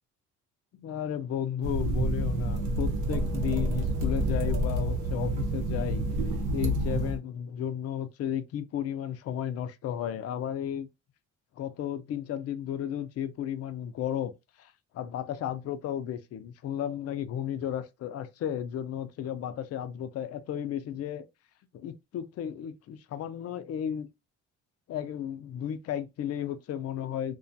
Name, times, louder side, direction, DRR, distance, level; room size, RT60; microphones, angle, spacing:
voice 1, 0.7-6.0 6.5-10.9 11.6-14.3 14.6-21.3 21.7-24.1 24.9-27.4, left 10 dB, 55° left, 0.4 m, -34 dB
sound 1, 1.6-7.2, right 1 dB, 90° right, 0.7 m, -28 dB
2.3 x 2.2 x 2.6 m
cardioid pair, 90°, 30 cm